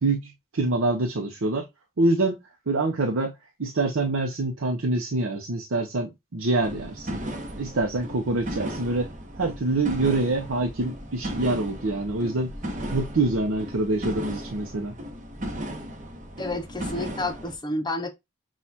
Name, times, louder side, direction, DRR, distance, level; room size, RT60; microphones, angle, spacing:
voice 1, 0.0-1.7 2.0-2.4 2.7-3.3 3.6-7.2 7.6-9.1 9.4-12.5 12.9-14.9, right 2 dB, 70° right, 0.7 m, -25 dB
sound 1, 6.6-17.5, equal, 35° right, 1.0 m, -36 dB
voice 2, 16.4-18.1, left 2 dB, 20° left, 0.6 m, -30 dB
6.2 x 2.4 x 2.8 m
head